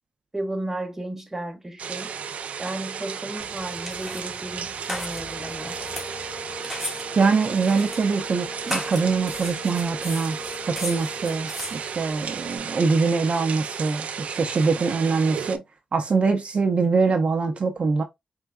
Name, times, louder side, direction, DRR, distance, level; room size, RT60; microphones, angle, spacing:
voice 1, 0.3-2.1 2.6-5.8, right 1 dB, 15° right, 1.2 m, -33 dB
sound 1, 1.8-15.6, right 7 dB, 80° right, 0.5 m, -34 dB
sound 2, 3.4-12.6, left 1 dB, 5° left, 2.3 m, -37 dB
sound 3, 5.0-11.6, left 3 dB, 40° left, 1.4 m, -41 dB
voice 2, 7.2-10.4 10.6-15.6 15.9-18.0, right 4 dB, 55° right, 0.8 m, -23 dB
4.7 x 3.7 x 2.2 m
wide cardioid pair, 100°, 2 cm